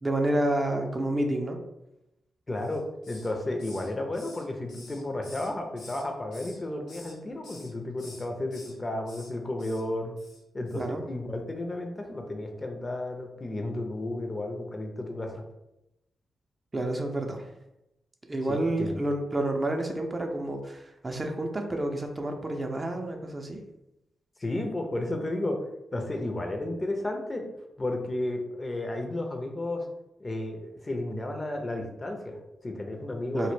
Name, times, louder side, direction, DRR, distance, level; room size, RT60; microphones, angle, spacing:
voice 1, 0.0-1.6 10.7-11.0 16.7-17.5 18.3-23.6 25.9-26.1 33.3-33.5, right 1 dB, 35° right, 3 dB, 0.4 m, -29 dB
voice 2, 2.5-10.1 10.5-15.4 18.5-19.0 24.4-25.6 25.9-27.5 27.8-29.8 30.2-33.5, left 1 dB, 35° left, 3 dB, 0.5 m, -33 dB
Hiss, 2.6-3.3 3.6-6.0 6.3-7.1 7.4-7.7 8.0-8.7 9.0-9.3 9.6-9.8 10.2-10.4 10.7-10.8, left 2 dB, 80° left, 0.7 m, -49 dB
2.1 x 2.0 x 3.1 m, 0.89 s
supercardioid pair, 45°, 0 cm